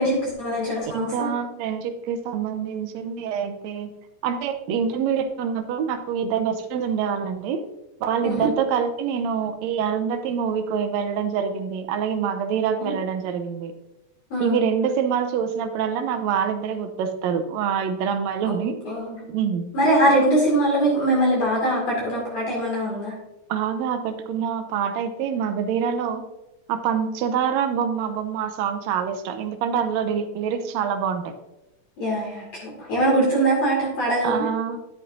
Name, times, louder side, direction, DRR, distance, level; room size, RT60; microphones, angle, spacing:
voice 1, 0.0-1.3 8.2-8.5 12.8-12.9 14.3-14.6 18.4-18.5 18.8-19.2 19.7-23.1 32.0-34.5, right 1 dB, 55° left, -4 dB, 3.3 m, -22 dB
voice 2, 0.9-3.9 4.2-7.6 8.0-13.7 14.4-18.8 19.3-19.7 23.5-26.3 26.7-31.3 34.2-34.8, right 7 dB, 75° right, 8 dB, 1.7 m, -25 dB
10.5 x 10.0 x 2.6 m, 0.97 s
omnidirectional pair, 3.8 m